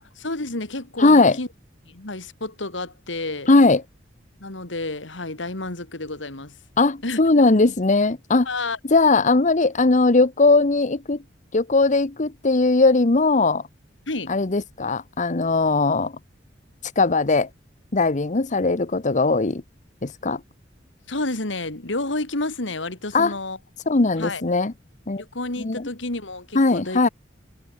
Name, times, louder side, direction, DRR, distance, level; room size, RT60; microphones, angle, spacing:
voice 1, 0.2-1.5 1.8-3.5 4.4-6.6 7.0-7.7 8.4-8.8 14.1-14.3 21.1-23.6 24.2-24.4 25.2-27.0, left 2 dB, 80° left, 3.1 m, -30 dB
voice 2, 1.0-1.4 3.5-3.8 6.8-8.5 8.9-11.2 11.5-13.6 14.3-16.1 17.0-17.5 17.9-19.6 20.0-20.4 23.1-23.3 23.9-24.7 25.1-25.2 25.6-25.9 26.5-27.1, left 3 dB, 40° left, 0.9 m, -19 dB
head